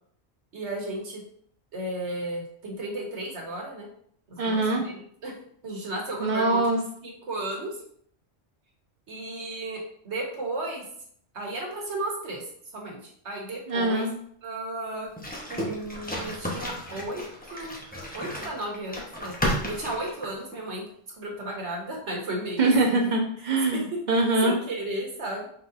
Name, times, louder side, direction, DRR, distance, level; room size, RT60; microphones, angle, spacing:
voice 1, 0.5-1.2 1.7-3.9 4.3-4.9 5.2-5.3 5.6-6.7 7.0-7.7 9.1-9.8 10.0-10.8 11.3-12.4 12.7-13.0 13.2-14.0 14.4-15.1 15.5-17.8 18.1-19.3 19.7-20.8 21.1-23.0 23.7-23.8 24.4-25.5, right 1 dB, 80° right, -1 dB, 1.5 m, -34 dB
voice 2, 4.4-4.8 6.2-6.8 13.7-14.1 22.6-24.6, right 2 dB, 45° right, 0 dB, 1.0 m, -23 dB
sound 1, 15.2-20.6, equal, 10° left, 0.8 m, -33 dB
5.1 x 3.9 x 2.6 m, 0.64 s
omnidirectional pair, 1.2 m